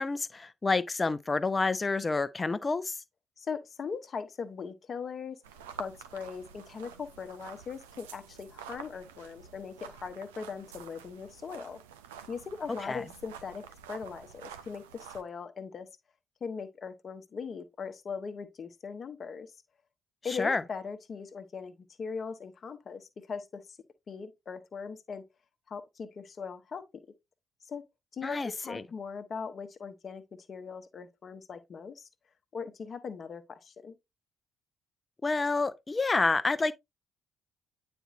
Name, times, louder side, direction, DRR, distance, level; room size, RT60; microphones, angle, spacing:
voice 1, 0.0-3.0 12.8-13.0 20.3-20.6 28.2-28.8 35.2-36.7, left 3 dB, 30° left, 0.7 m, -29 dB
voice 2, 3.4-11.8 12.3-15.9 16.4-19.5 20.2-23.8 24.1-25.3 25.7-26.9 27.6-27.8 28.1-32.1 32.5-34.0, left 5 dB, 50° left, 1.0 m, -40 dB
sound 1, 5.4-15.2, right 8 dB, 85° right, 0.5 m, -48 dB
9.1 x 4.3 x 2.5 m
hypercardioid pair, 45°, 0 cm